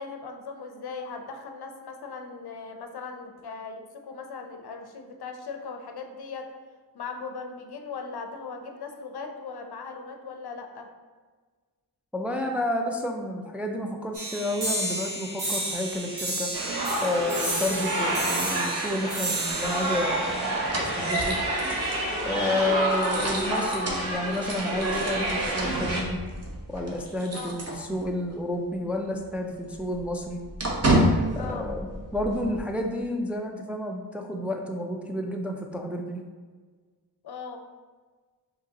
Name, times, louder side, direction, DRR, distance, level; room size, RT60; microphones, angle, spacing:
voice 1, 0.0-6.5 6.9-10.9 22.4-22.7 27.3-27.6 31.4-31.7 37.2-37.6, left 5 dB, 70° left, 5 dB, 0.6 m, -38 dB
voice 2, 12.1-16.5 17.0-21.4 22.2-26.2 26.7-30.4 31.3-36.2, left 1 dB, 5° right, 2 dB, 0.3 m, -30 dB
sound 1, 14.1-21.2, right 1 dB, 85° right, 1.4 m, -32 dB
sound 2, 16.5-26.0, right 1 dB, 55° right, 1.3 m, -29 dB
sound 3, 19.5-28.4 28.7-28.8 29.1-32.6, right 1 dB, 40° right, 0.9 m, -31 dB
4.9 x 3.0 x 2.8 m, 1.4 s
wide cardioid pair, 70°, 40 cm